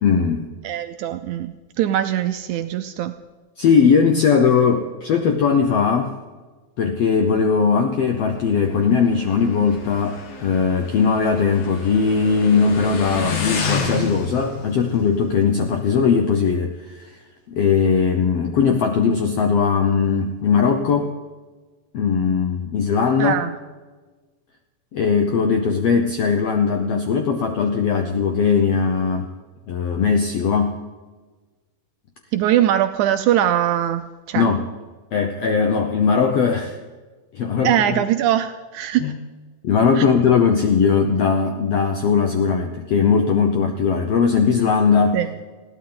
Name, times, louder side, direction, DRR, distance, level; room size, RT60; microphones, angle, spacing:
voice 1, 0.0-0.5 3.6-6.2 6.8-17.2 17.5-21.1 21.9-23.4 24.9-29.3 29.7-30.8 34.3-34.7 35.1-36.8 37.3-38.0 39.0-39.2 39.6-45.2, left 6 dB, 80° left, 5 dB, 1.4 m, -19 dB
voice 2, 0.6-3.1 23.2-23.5 32.3-34.5 37.6-39.1 40.0-40.1 45.1-45.3, right 11 dB, 85° right, 9 dB, 1.7 m, -21 dB
Motorcycle, 8.0-16.3, left 4 dB, 55° left, 2.5 m, -31 dB
21.0 x 15.5 x 3.9 m, 1.3 s
omnidirectional pair, 4.0 m